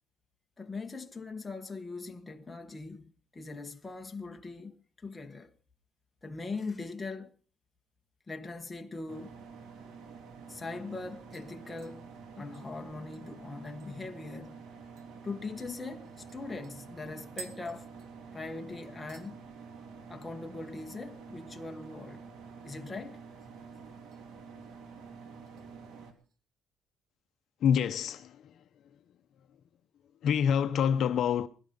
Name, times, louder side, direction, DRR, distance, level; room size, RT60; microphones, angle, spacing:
voice 1, 0.6-5.5 6.2-7.3 8.3-9.4 10.5-12.1 12.4-14.6 15.2-17.9 18.3-19.5 20.1-22.3 22.6-23.2, left 3 dB, 15° left, 1.3 m, -41 dB
sound 1, 9.1-26.1, right 5 dB, 85° right, 3.3 m, -48 dB
sound 2, 11.3-14.2 14.5-14.6 15.0-15.1 15.6-18.6 18.8-19.3 19.7-20.1 20.3-20.4 22.5-23.2 23.5-24.2 24.6-24.9 25.5-26.4 26.7-26.8, right 4 dB, 70° right, 3.0 m, -54 dB
voice 2, 27.6-29.0 30.2-31.5, left 8 dB, 55° left, 0.8 m, -27 dB
21.0 x 11.5 x 5.3 m
cardioid pair, 150°, 0 cm